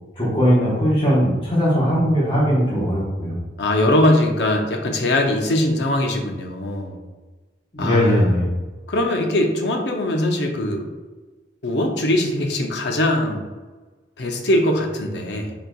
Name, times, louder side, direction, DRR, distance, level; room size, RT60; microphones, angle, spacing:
voice 1, 0.2-3.4 7.7-8.5, equal, 30° left, -8 dB, 1.2 m, -19 dB
voice 2, 3.6-7.0 7.8-8.3 8.9-10.9 11.6-13.5 14.2-15.5, left 1 dB, 70° left, 3 dB, 0.6 m, -21 dB
4.2 x 3.8 x 2.3 m, 1.3 s
head